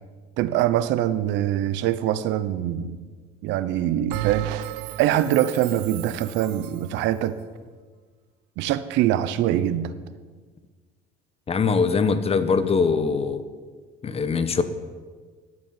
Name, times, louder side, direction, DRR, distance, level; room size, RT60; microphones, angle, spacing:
voice 1, 0.4-3.0 3.4-4.5 5.0-7.4 8.6-9.9, right 12 dB, 75° right, 14 dB, 1.0 m, -23 dB
Bell, 4.1-6.9, right 16 dB, 90° right, 0.5 m, -33 dB
voice 2, 11.5-13.4 14.0-14.6, left 5 dB, 30° left, 11 dB, 1.2 m, -22 dB
12.5 x 8.5 x 9.4 m, 1.5 s
supercardioid pair, 100°, 19 cm